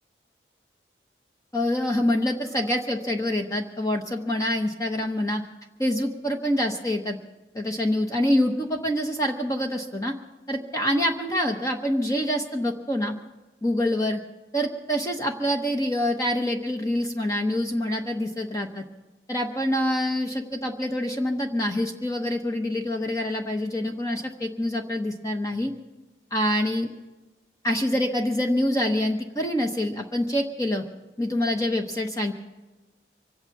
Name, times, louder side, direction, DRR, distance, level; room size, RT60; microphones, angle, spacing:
voice 1, 1.5-5.4 5.8-7.2 7.5-10.1 10.5-13.1 13.6-14.2 14.5-18.8 19.3-25.7 26.3-26.9 27.6-30.8 31.2-32.3, left 1 dB, 20° left, 3 dB, 0.9 m, -26 dB
25.0 x 8.7 x 5.9 m, 1.1 s
head